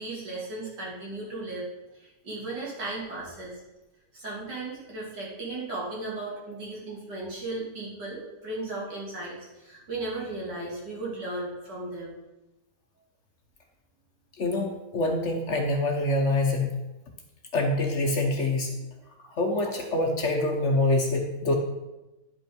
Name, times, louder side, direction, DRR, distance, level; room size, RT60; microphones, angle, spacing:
voice 1, 0.0-1.7 2.0-3.6 4.1-12.1 18.7-18.8, right 2 dB, 80° right, -5 dB, 3.3 m, -36 dB
voice 2, 14.3-16.8 17.5-18.8 19.3-21.6, left 2 dB, 50° left, 3 dB, 1.1 m, -25 dB
10.0 x 5.5 x 5.2 m, 1.0 s
omnidirectional pair, 1.8 m